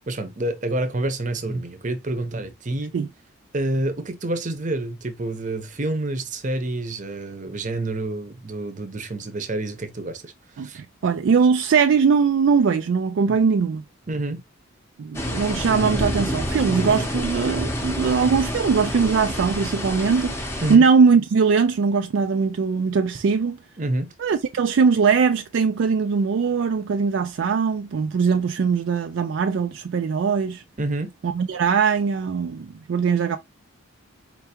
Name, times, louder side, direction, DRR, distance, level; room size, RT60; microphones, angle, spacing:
voice 1, 0.0-2.9 3.5-10.8 14.1-14.4 20.6-20.8 23.8-24.1 30.8-31.1, right 2 dB, 40° right, 0.8 m, -28 dB
voice 2, 10.6-13.8 15.0-20.3 20.7-23.6 24.2-30.6 31.2-33.4, right 5 dB, 65° right, 0.3 m, -20 dB
sound 1, 15.1-20.8, equal, 10° left, 0.7 m, -28 dB
4.5 x 3.4 x 2.9 m
head